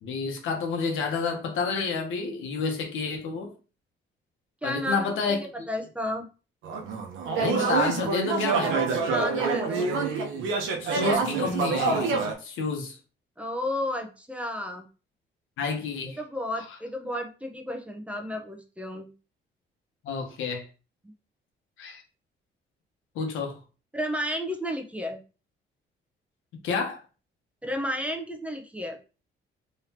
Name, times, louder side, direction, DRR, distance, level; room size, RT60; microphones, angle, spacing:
voice 1, 0.0-3.5 4.6-5.7 7.4-8.8 10.8-12.1 12.4-13.0 15.6-16.2 20.0-20.6 21.8-22.0 23.1-23.6 26.6-27.0, left 4 dB, 85° left, 1.2 m, -29 dB
voice 2, 4.6-5.4 5.7-6.3 9.1-9.9 13.4-14.9 16.2-19.1 23.9-25.2 27.6-29.0, left 1 dB, 5° right, 0.9 m, -32 dB
sound 1, 6.6-12.3, right 4 dB, 85° right, 0.9 m, -26 dB
3.6 x 3.4 x 2.9 m
cardioid pair, 90°, 20 cm